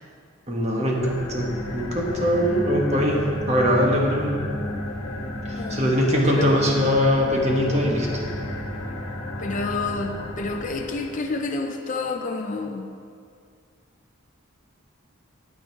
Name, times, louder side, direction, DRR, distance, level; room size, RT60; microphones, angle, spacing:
voice 1, 0.5-4.4 5.5-8.3, equal, 30° right, -1 dB, 1.5 m, -22 dB
sound 1, 0.9-11.4, left 1 dB, 90° left, 1.2 m, -33 dB
voice 2, 5.5-5.9 6.4-6.5 9.4-13.0, left 3 dB, 40° left, 3 dB, 0.5 m, -29 dB
9.1 x 9.1 x 4.6 m, 2.2 s
head